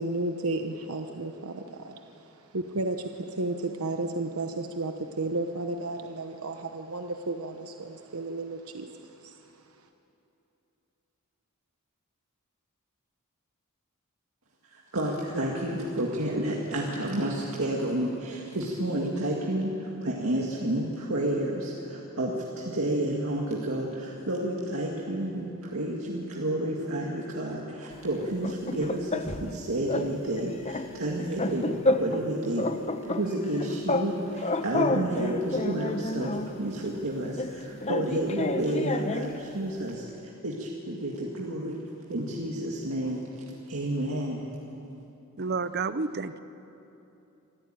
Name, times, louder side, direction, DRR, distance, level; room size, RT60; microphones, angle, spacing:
voice 1, 0.0-2.0 2.3-8.9 9.2-9.4, right 2 dB, 90° right, 6 dB, 1.0 m, -33 dB
voice 2, 14.7-32.7 33.0-40.0 40.4-41.8 42.1-43.2 43.7-44.4, right 1 dB, 70° right, -2 dB, 2.1 m, -30 dB
sound 1, 28.2-29.5 29.9-30.1 30.4-32.3 32.6-34.1 34.4-36.5 37.4-39.4, left 2 dB, 30° left, 0.9 m, -30 dB
voice 3, 45.4-46.4, right 4 dB, 45° right, 13 dB, 0.7 m, -30 dB
25.0 x 14.5 x 9.0 m, 2.9 s
head